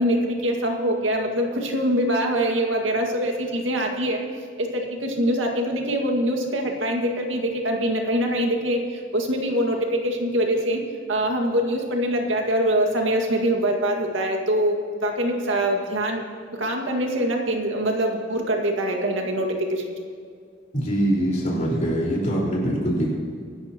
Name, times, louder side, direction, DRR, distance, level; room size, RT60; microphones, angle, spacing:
voice 1, 0.0-4.2 4.6-10.8 11.1-16.2 16.5-19.9, equal, 85° right, 2 dB, 2.1 m, -24 dB
voice 2, 20.7-23.1, right 1 dB, 40° left, -4 dB, 4.7 m, -23 dB
24.0 x 12.5 x 3.0 m, 2.2 s
head